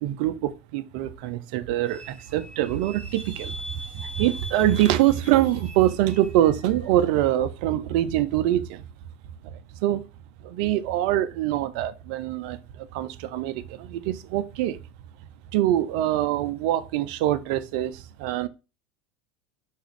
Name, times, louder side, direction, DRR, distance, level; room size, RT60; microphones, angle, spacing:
voice 1, 0.0-3.6 3.9-8.8 9.4-9.5 9.8-10.0 10.4-14.8 15.5-18.5, right 13 dB, 60° right, 0.3 m, -24 dB
sound 1, 1.8-7.5, equal, 20° left, 0.9 m, -42 dB
2.9 x 2.4 x 3.1 m
hypercardioid pair, 80°, 5 cm